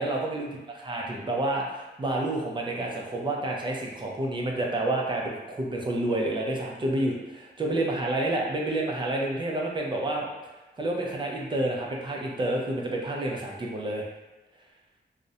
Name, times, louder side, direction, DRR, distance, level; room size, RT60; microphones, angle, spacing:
voice 1, 0.0-10.3 10.8-14.0, right 1 dB, 25° right, -2 dB, 0.4 m, -29 dB
2.4 x 2.0 x 2.6 m, 1.1 s
wide cardioid pair, 160°, 18 cm